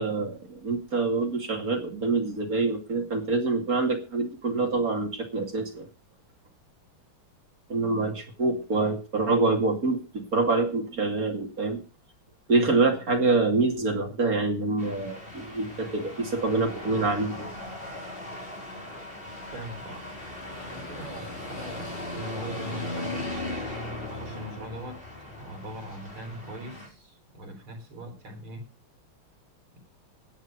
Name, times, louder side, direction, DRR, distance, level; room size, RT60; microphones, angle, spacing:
voice 1, 0.0-5.9 7.7-11.8 12.5-17.5, right 3 dB, 40° right, 3 dB, 2.9 m, -26 dB
sound 1, 14.8-26.9, left 1 dB, 25° left, 5.0 m, -38 dB
voice 2, 19.5-20.1 20.6-23.3 24.1-25.0 25.4-28.6, right 1 dB, 70° right, 4 dB, 5.2 m, -41 dB
15.5 x 9.5 x 5.3 m, 0.32 s
omnidirectional pair, 2.3 m